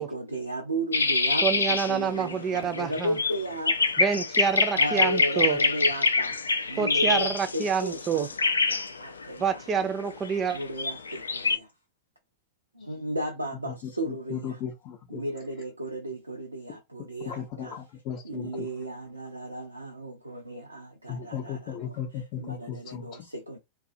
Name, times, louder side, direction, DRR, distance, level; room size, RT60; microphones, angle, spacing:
voice 1, 0.0-3.9 4.7-10.1 10.5-11.7 12.7-14.6 15.1-17.8 18.2-21.6 22.4-23.6, right 1 dB, 85° right, 0.5 m, -34 dB
sound 1, 0.9-11.6, left 4 dB, 75° left, 0.3 m, -26 dB
voice 2, 1.4-3.2 4.0-5.6 6.8-8.3 9.4-10.6, right 7 dB, 25° right, 0.5 m, -27 dB
voice 3, 13.7-15.2 17.2-18.7 21.1-23.3, left 8 dB, 45° left, 0.6 m, -36 dB
2.6 x 2.4 x 2.5 m
figure-of-eight pair, 90°, 0 cm